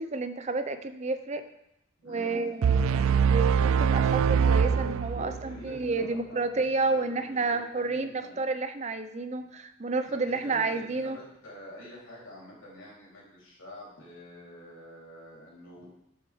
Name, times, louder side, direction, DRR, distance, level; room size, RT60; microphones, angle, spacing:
voice 1, 0.0-1.4 2.0-11.2, right 3 dB, 35° right, 9 dB, 0.5 m, -30 dB
voice 2, 2.0-2.4 5.1-8.4 10.0-15.9, left 1 dB, 80° left, -5 dB, 3.6 m, -47 dB
sound 1, 2.6-5.6, right 6 dB, 85° right, 0.3 m, -23 dB
12.5 x 6.5 x 3.5 m, 0.80 s
head